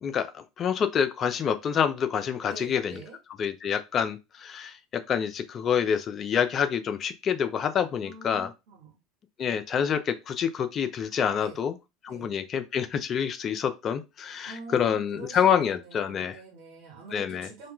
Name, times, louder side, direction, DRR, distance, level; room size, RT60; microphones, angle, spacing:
voice 1, 0.0-3.0 3.4-8.5 9.4-11.7 12.0-16.4 17.1-17.5, left 8 dB, 40° left, 0.4 m, -27 dB
voice 2, 2.5-3.2 8.0-9.0 11.4-11.6 12.1-12.3 14.5-17.7, right 2 dB, 70° right, 1.1 m, -45 dB
2.3 x 2.1 x 3.0 m
hypercardioid pair, 80°, 0 cm